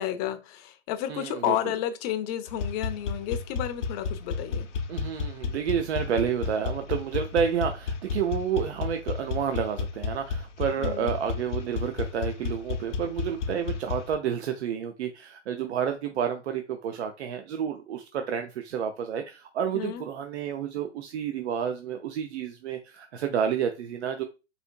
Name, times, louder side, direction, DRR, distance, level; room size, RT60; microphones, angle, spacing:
voice 1, 0.0-4.7 10.8-11.1 19.7-20.0, left 11 dB, 35° left, 0.5 m, -31 dB
voice 2, 1.1-1.6 4.9-24.2, right 8 dB, 65° right, 0.5 m, -30 dB
sound 1, 2.5-14.2, left 5 dB, 80° left, 0.7 m, -32 dB
4.1 x 2.7 x 2.4 m
hypercardioid pair, 110°, 35 cm